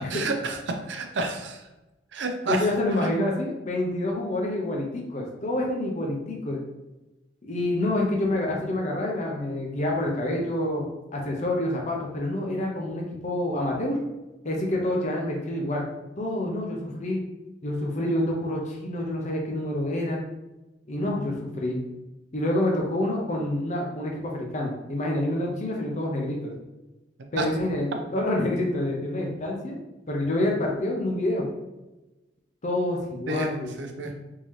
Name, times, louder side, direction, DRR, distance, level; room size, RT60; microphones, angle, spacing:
voice 1, 0.1-0.6 0.9-1.6 2.1-2.7 3.0-3.1 27.4-27.5 33.3-33.5 33.8-34.1, right 2 dB, 75° right, 4 dB, 0.6 m, -29 dB
voice 2, 2.5-6.6 7.4-14.0 14.4-15.9 16.2-17.2 17.6-20.2 20.9-21.8 22.3-26.5 27.3-29.8 30.1-31.5 32.6-33.7 34.0-34.1, left 1 dB, 40° left, -1 dB, 0.7 m, -27 dB
3.7 x 2.8 x 3.2 m, 1.0 s
head